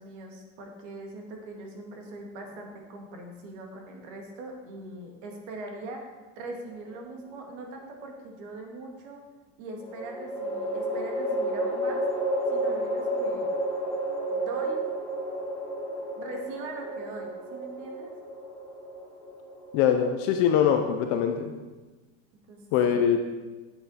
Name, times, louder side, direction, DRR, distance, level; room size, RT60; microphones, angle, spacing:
voice 1, 0.0-9.2 9.6-12.0 12.5-13.5 14.3-14.8 16.2-18.1 22.5-23.1, right 2 dB, 60° right, 2 dB, 1.9 m, -41 dB
sound 1, 6.7-7.5 9.8-21.1, right 1 dB, 5° left, 1.8 m, -32 dB
voice 2, 19.7-21.5 22.7-23.2, left 8 dB, 35° left, 6 dB, 0.4 m, -23 dB
9.0 x 8.0 x 4.1 m, 1.3 s
cardioid pair, 175°, 39 cm